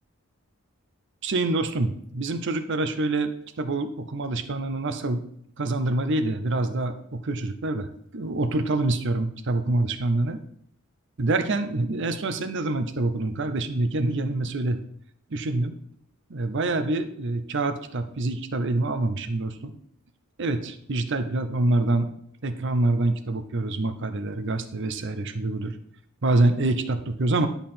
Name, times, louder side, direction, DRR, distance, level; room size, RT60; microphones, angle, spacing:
voice 1, 1.2-5.2 5.6-10.4 11.2-14.8 15.3-15.7 16.3-19.7 20.4-22.1 22.4-25.8 26.2-27.5, right 2 dB, 55° right, 10 dB, 0.7 m, -26 dB
10.5 x 5.6 x 4.3 m, 0.68 s
head